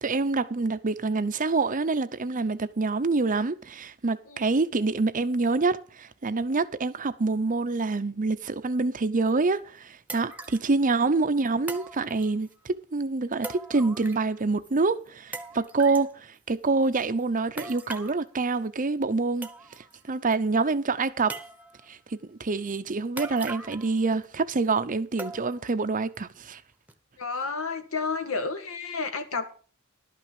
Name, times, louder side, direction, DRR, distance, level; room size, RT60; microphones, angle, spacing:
voice 1, 0.0-19.5 20.1-21.4 21.9-26.6, right 3 dB, 40° right, 0.7 m, -26 dB
sound 1, 9.3-9.4 10.1-10.7 11.7-12.5 13.4-14.4 14.6-14.7 15.3-16.1 17.6-18.2 19.0-19.1 19.4-20.0 20.3-20.4 21.3-21.9 23.2-23.9 24.2-24.3 25.2-25.7 26.2-26.3 26.9-27.0, right 3 dB, 10° right, 1.0 m, -40 dB
voice 2, 27.2-29.5, left 4 dB, 75° left, 1.6 m, -31 dB
12.0 x 5.9 x 7.4 m
head